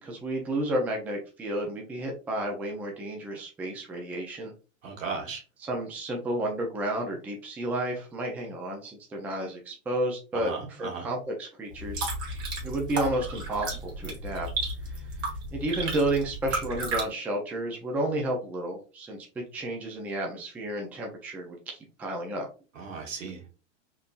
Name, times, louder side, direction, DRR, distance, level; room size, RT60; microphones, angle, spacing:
voice 1, 0.0-4.5 5.6-12.1 12.6-14.5 15.5-22.5, right 1 dB, 5° right, 1 dB, 0.3 m, -31 dB
voice 2, 4.8-5.4 10.3-11.1 22.7-23.5, right 4 dB, 90° right, 2 dB, 1.4 m, -36 dB
sound 1, 11.7-17.0, right 2 dB, 40° right, 1.6 m, -33 dB
3.7 x 2.6 x 2.3 m, 0.35 s
hypercardioid pair, 130°, 38 cm